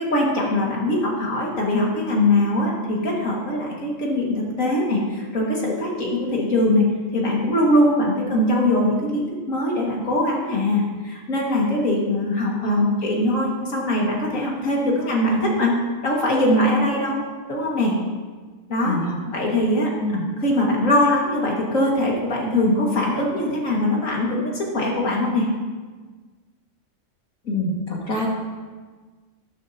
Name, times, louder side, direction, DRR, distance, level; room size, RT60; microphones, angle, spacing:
voice 1, 0.0-6.8 7.1-15.8 16.0-17.2 17.5-17.9 18.7-19.0 19.3-19.9 20.4-25.5, left 1 dB, 65° left, -2 dB, 2.4 m, -21 dB
voice 2, 12.3-12.9 18.8-19.2 20.0-20.2 27.4-28.3, left 1 dB, 85° left, -3 dB, 2.6 m, -26 dB
12.5 x 11.5 x 2.9 m, 1.4 s
omnidirectional pair, 1.5 m